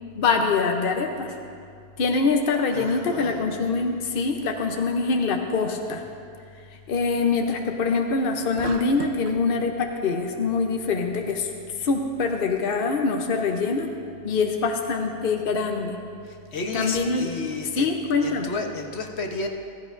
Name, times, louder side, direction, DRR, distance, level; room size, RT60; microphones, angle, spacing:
voice 1, 0.2-1.4 2.0-6.0 6.9-11.5 11.8-13.9 14.2-16.0 16.7-18.5, left 4 dB, 60° left, 3 dB, 1.0 m, -24 dB
voice 2, 2.7-3.4 16.2-17.9 18.2-19.5, left 3 dB, 85° left, 3 dB, 1.3 m, -32 dB
sound 1, 8.6-9.4, right 6 dB, 75° right, 0.9 m, -36 dB
15.5 x 15.5 x 2.6 m, 2.3 s
omnidirectional pair, 1.1 m